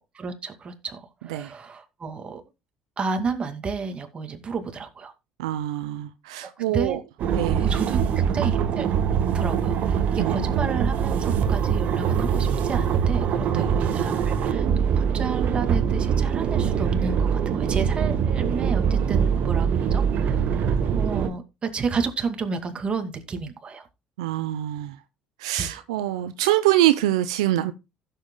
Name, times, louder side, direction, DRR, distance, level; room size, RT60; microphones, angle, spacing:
voice 1, 0.1-2.4 3.0-5.1 6.4-7.0 7.6-8.9 9.3-23.9 25.6-25.8, right 5 dB, 35° right, 2.3 m, -31 dB
voice 2, 5.4-7.0 7.3-7.7 10.2-10.3 13.5-13.7 24.2-25.0 25.4-27.7, right 14 dB, 85° right, 0.6 m, -24 dB
sound 1, 7.2-21.3, right 7 dB, 60° right, 1.4 m, -23 dB
16.0 x 7.7 x 2.3 m
hypercardioid pair, 65°, 3 cm